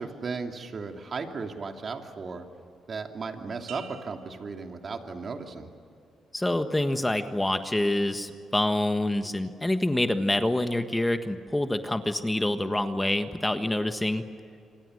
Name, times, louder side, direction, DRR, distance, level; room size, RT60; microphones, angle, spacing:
voice 1, 0.0-2.5 2.9-5.7, right 4 dB, 45° right, 4 dB, 2.8 m, -35 dB
sound 1, 3.7-5.5 6.0-6.4, right 8 dB, 85° right, 3.2 m, -49 dB
voice 2, 6.3-14.2, left 1 dB, 10° left, 8 dB, 1.4 m, -26 dB
27.0 x 26.0 x 6.6 m, 2.5 s
cardioid pair, 90°, 0 cm